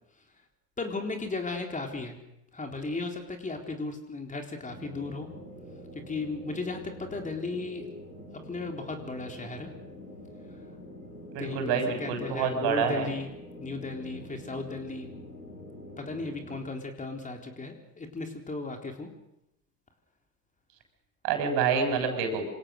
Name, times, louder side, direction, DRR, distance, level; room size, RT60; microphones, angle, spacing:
voice 1, 0.8-2.2 2.5-5.3 5.9-7.9 8.3-9.7 11.4-13.3 13.6-15.1 16.0-19.1, left 3 dB, 15° left, 4 dB, 4.0 m, -35 dB
sound 1, 4.7-16.6, equal, 90° left, 5.6 m, -45 dB
voice 2, 11.3-13.1 21.2-22.4, right 6 dB, 50° right, 6 dB, 6.7 m, -27 dB
27.5 x 27.5 x 6.6 m, 0.85 s
figure-of-eight pair, 75°, 48 cm